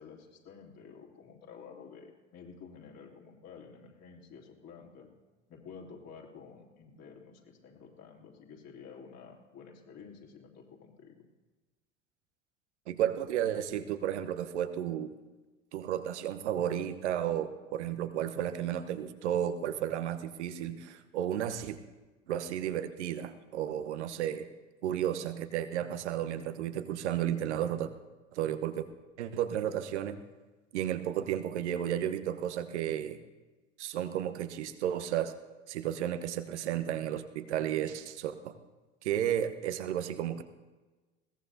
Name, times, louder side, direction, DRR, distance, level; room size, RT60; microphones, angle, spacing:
voice 1, 0.0-5.1 5.5-11.3, left 6 dB, 40° left, -1 dB, 3.0 m, -51 dB
voice 2, 12.9-15.2 15.7-21.8 22.3-24.5 24.8-27.9 28.3-28.8 29.2-30.2 30.7-33.2 33.8-35.3 35.7-38.5 39.0-40.4, right 10 dB, 60° right, 10 dB, 1.1 m, -33 dB
21.5 x 17.5 x 2.8 m, 1.2 s
figure-of-eight pair, 75°, 38 cm